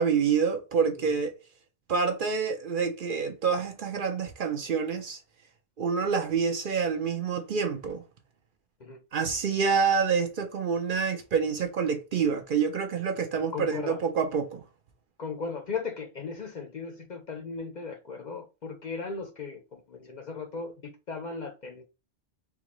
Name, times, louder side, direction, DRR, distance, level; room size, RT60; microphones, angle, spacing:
voice 1, 0.0-1.3 1.9-5.2 5.8-8.0 9.1-14.6, right 6 dB, 60° right, 0.7 m, -27 dB
voice 2, 13.5-14.0 15.2-20.7 21.1-21.9, left 4 dB, 50° left, 0.6 m, -37 dB
3.8 x 2.4 x 3.0 m
omnidirectional pair, 1.1 m